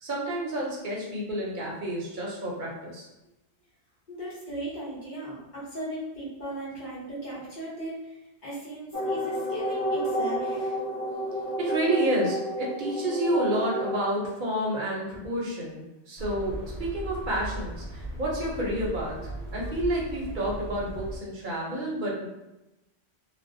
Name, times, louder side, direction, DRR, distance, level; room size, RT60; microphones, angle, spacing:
voice 1, 0.0-3.1 11.6-19.1 19.5-22.3, right 1 dB, 50° right, -3 dB, 0.8 m, -30 dB
voice 2, 4.1-10.8, right 1 dB, 45° left, -7 dB, 1.0 m, -37 dB
sound 1, 8.9-14.0, equal, 30° right, 0.4 m, -30 dB
sound 2, 16.2-21.2, right 1 dB, 85° left, 1.1 m, -37 dB
2.5 x 2.1 x 2.6 m, 0.96 s
omnidirectional pair, 1.1 m